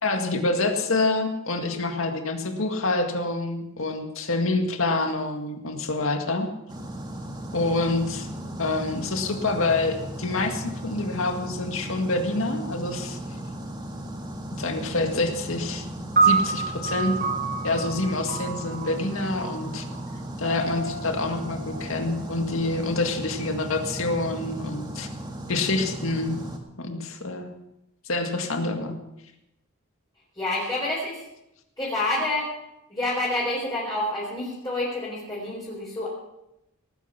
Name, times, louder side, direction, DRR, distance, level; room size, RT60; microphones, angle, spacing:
voice 1, 0.0-6.5 7.5-8.3 8.6-13.2 14.5-15.9 16.2-17.2 17.6-19.8 20.4-25.1 25.5-26.4 26.8-27.5 28.1-28.9, left 2 dB, 70° left, 5 dB, 1.9 m, -27 dB
sound 1, 6.7-26.6, right 1 dB, 20° right, 2.0 m, -36 dB
sound 2, 16.2-22.6, right 4 dB, 45° right, 3.5 m, -28 dB
voice 2, 30.4-31.2 31.8-32.5 32.9-36.1, left 2 dB, 20° left, -7 dB, 4.1 m, -28 dB
18.5 x 10.0 x 5.9 m, 0.87 s
head